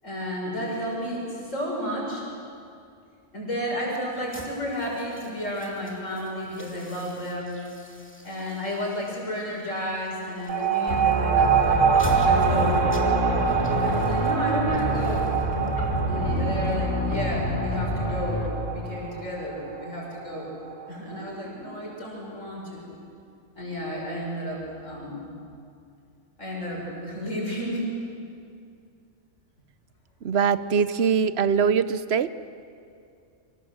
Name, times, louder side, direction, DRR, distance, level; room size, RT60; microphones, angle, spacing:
voice 1, 0.0-2.3 3.3-7.6 8.2-11.8 12.2-12.9 13.8-15.3 16.0-20.5 20.9-22.8 23.6-25.2 26.4-27.9, equal, 90° left, -2 dB, 6.9 m, -32 dB
sound 1, 4.1-17.2, left 1 dB, 10° left, 2.8 m, -44 dB
sound 2, 10.5-21.4, right 6 dB, 85° right, 1.8 m, -25 dB
sound 3, 10.9-18.5, left 1 dB, 60° left, 3.3 m, -28 dB
voice 2, 30.2-32.3, right 6 dB, 60° right, 14 dB, 1.0 m, -22 dB
28.5 x 25.5 x 7.9 m, 2.4 s
omnidirectional pair, 1.3 m